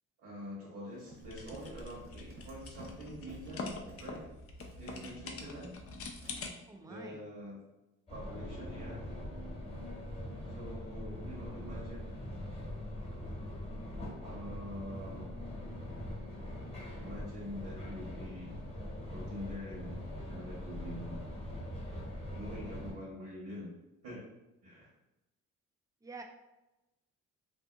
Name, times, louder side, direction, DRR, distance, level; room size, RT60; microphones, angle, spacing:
voice 1, 0.2-4.3 4.8-5.7 6.8-7.6 8.1-9.0 10.5-12.1 14.2-15.3 17.0-18.5 19.1-20.0 20.3-21.2 22.3-23.7 24.0-24.3 24.6-24.9, equal, 75° right, -7 dB, 1.2 m, -45 dB
Run, 0.9-4.2 4.6-6.0 6.2-6.4, right 2 dB, 45° right, 0.8 m, -56 dB
sound 1, 1.2-6.5, left 3 dB, 50° left, 0.5 m, -45 dB
voice 2, 6.7-7.2 26.0-26.2, right 3 dB, 10° right, 3 dB, 0.3 m, -47 dB
sound 2, 8.1-22.9, left 1 dB, 20° left, 1.0 m, -42 dB
2.7 x 2.5 x 2.4 m, 0.99 s
cardioid pair, 90°, 30 cm